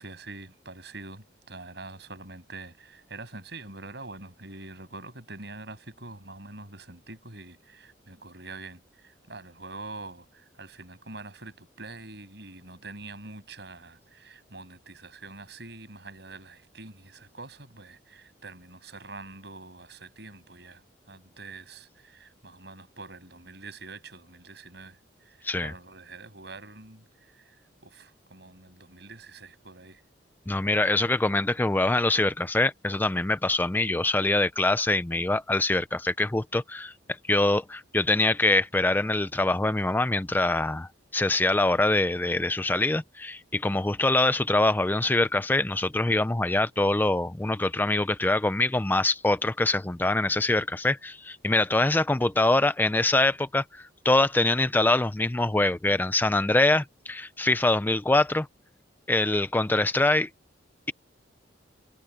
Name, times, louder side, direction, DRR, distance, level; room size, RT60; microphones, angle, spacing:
voice 1, 0.0-20.8 21.1-25.0 25.3-27.0 27.8-30.0, right 3 dB, 60° right, 7.3 m, -45 dB
voice 2, 30.5-36.9 37.3-58.5 59.1-60.3, left 2 dB, 10° left, 0.4 m, -24 dB
head